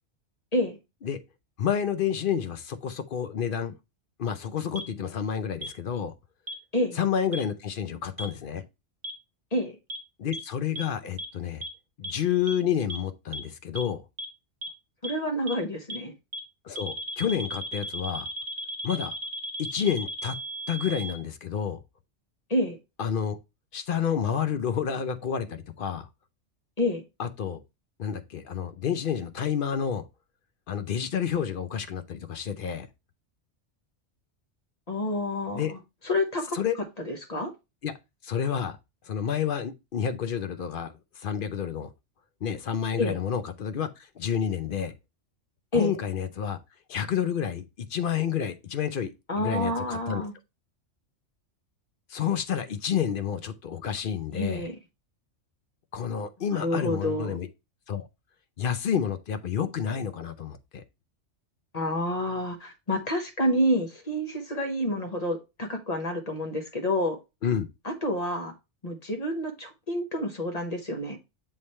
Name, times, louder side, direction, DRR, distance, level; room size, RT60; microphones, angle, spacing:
voice 1, 1.6-3.7 4.2-6.1 7.0-8.6 10.2-11.6 12.0-14.0 16.6-18.3 18.8-19.1 19.6-20.4 20.7-21.8 23.0-23.4 23.7-26.1 27.2-27.6 28.0-30.1 30.7-32.9 35.5-35.7 36.5-36.8 37.8-37.9 38.2-38.8 39.0-41.9 42.4-44.9 45.7-46.6 46.9-50.2 52.1-54.7 55.9-57.5 57.9-58.1 58.6-60.8 67.4-67.7, left 8 dB, 55° left, 0.7 m, -29 dB
sound 1, 4.8-4.9 5.6-5.7 6.5-6.6 7.3-7.4 8.2-8.3 9.0-9.1 9.9-10.0 10.3-10.4 10.8-10.9 11.2-11.3 11.6-11.7 12.0-12.1 12.5-12.6 12.9-13.0 13.3-13.4 13.8-13.9 14.2-14.3 14.6-14.7 15.0-15.1 15.5-15.6 15.9-16.0 16.3-16.4 16.8-21.1, right 2 dB, 55° right, 1.1 m, -34 dB
voice 2, 15.0-16.1 22.5-22.8 26.8-27.0 34.9-35.8 36.0-36.6 37.1-37.5 43.0-43.2 45.7-45.9 49.3-50.3 54.3-54.7 56.5-57.4 61.7-67.2 67.8-68.5 68.8-71.2, left 1 dB, 35° left, 1.1 m, -28 dB
7.3 x 3.3 x 4.2 m
omnidirectional pair, 1.3 m